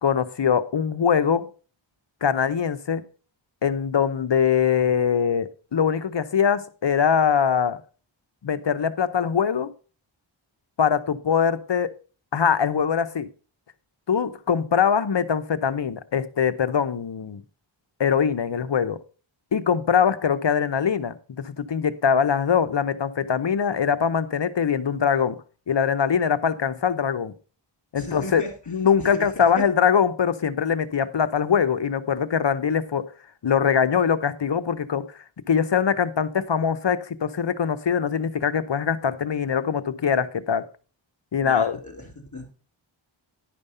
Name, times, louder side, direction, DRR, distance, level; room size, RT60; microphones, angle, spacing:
voice 1, 0.0-1.5 2.2-3.0 3.6-7.8 8.4-9.7 10.8-11.9 12.3-13.3 14.1-17.4 18.0-19.0 19.5-25.4 25.7-27.3 27.9-33.1 33.4-35.0 35.5-40.6 41.3-41.8, left 7 dB, 60° left, 12 dB, 0.8 m, -22 dB
voice 2, 27.9-28.7 29.0-29.6 41.4-42.5, left 1 dB, 35° left, 2 dB, 3.5 m, -37 dB
11.0 x 5.3 x 5.4 m, 0.37 s
wide cardioid pair, 70°, 48 cm